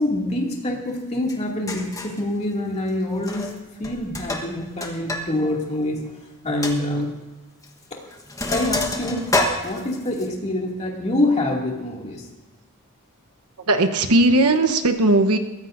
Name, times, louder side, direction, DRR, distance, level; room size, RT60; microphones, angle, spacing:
voice 1, 0.0-3.5 3.8-6.0 6.4-7.1 8.4-9.3 9.6-12.3, left 1 dB, 30° left, -2 dB, 2.4 m, -25 dB
Sink (filling or washing), 1.3-1.4 1.7-2.2 3.2-3.6 3.8-5.2 5.5-5.6 6.1-6.2 6.6-6.8 7.6-7.8 8.1-10.3, left 2 dB, 15° left, 1.2 m, -27 dB
voice 2, 13.7-15.4, right 2 dB, 90° right, 6 dB, 1.0 m, -17 dB
21.5 x 15.5 x 2.6 m, 1.1 s
head